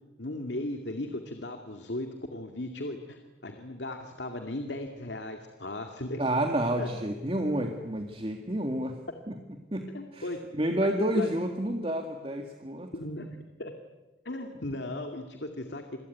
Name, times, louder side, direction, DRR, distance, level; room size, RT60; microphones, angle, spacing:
voice 1, 0.2-6.2 6.8-6.9 9.9-10.4 10.8-11.3 12.9-13.3 13.6-13.7 14.2-15.8, left 1 dB, 75° left, 5 dB, 2.3 m, -37 dB
voice 2, 6.2-9.0 9.3-9.4 9.7-9.8 10.1-12.9, right 1 dB, 30° right, 4 dB, 2.0 m, -29 dB
28.0 x 22.5 x 9.4 m, 1.1 s
head